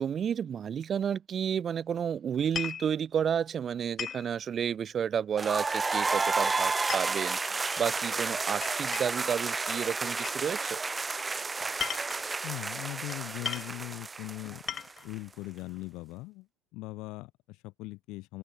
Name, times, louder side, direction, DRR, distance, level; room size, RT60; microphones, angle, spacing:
voice 1, 0.0-10.8, right 8 dB, 30° right, 0.6 m, -31 dB
sound 1, 2.4-2.9 4.0-4.3 5.7-6.1 6.6-7.8 8.6-9.3 10.2-10.4 11.6-12.3 13.1-13.2 13.4-13.8 14.4-15.1, left 8 dB, 30° left, 4.1 m, -37 dB
sound 2, 5.4-15.1, right 4 dB, 15° right, 1.0 m, -31 dB
voice 2, 12.4-14.8 15.0-16.5 16.7-18.4, left 21 dB, 60° left, 1.9 m, -40 dB
open air
supercardioid pair, 125°, 0 cm